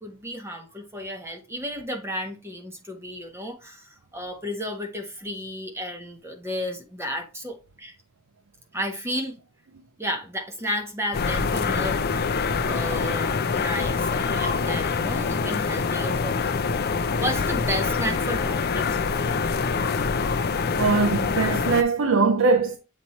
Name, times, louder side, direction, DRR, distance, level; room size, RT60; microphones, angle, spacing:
voice 1, 0.0-7.9 8.7-9.4 10.0-16.8 17.2-19.4, equal, 10° right, 0.8 m, -33 dB
sound 1, 11.1-21.8, left 5 dB, 45° left, 0.5 m, -25 dB
voice 2, 20.8-22.8, right 4 dB, 60° right, 0.5 m, -21 dB
7.8 x 3.0 x 4.1 m
head